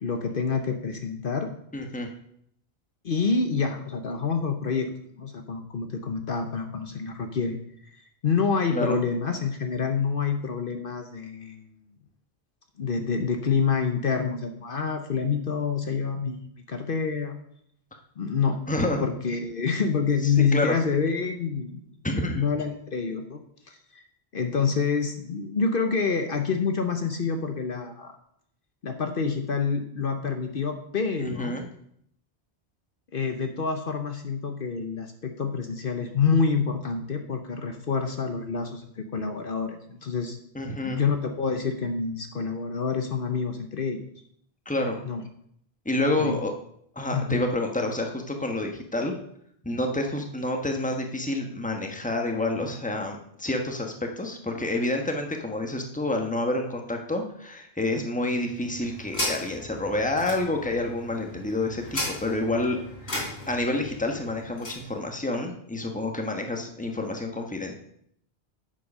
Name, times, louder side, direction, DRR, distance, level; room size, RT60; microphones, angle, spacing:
voice 1, 0.0-1.5 3.0-4.9 5.2-7.6 7.9-11.6 12.8-17.4 18.2-18.6 19.0-21.8 22.3-24.0 24.3-28.2 28.8-31.6 33.1-40.4 40.8-44.0 45.0-45.2 46.2-46.4 47.1-47.4, left 5 dB, 55° left, 6 dB, 1.0 m, -27 dB
voice 2, 1.7-2.1 8.7-9.0 18.7-19.0 20.2-20.8 22.0-22.4 31.2-31.7 40.5-41.0 44.6-45.0 45.8-46.5 46.9-49.1 49.6-62.8 63.5-67.7, left 2 dB, 5° left, 3 dB, 1.2 m, -28 dB
sound 1, 58.3-64.9, left 1 dB, 75° left, 3.8 m, -36 dB
8.6 x 7.6 x 5.5 m, 0.70 s
omnidirectional pair, 1.1 m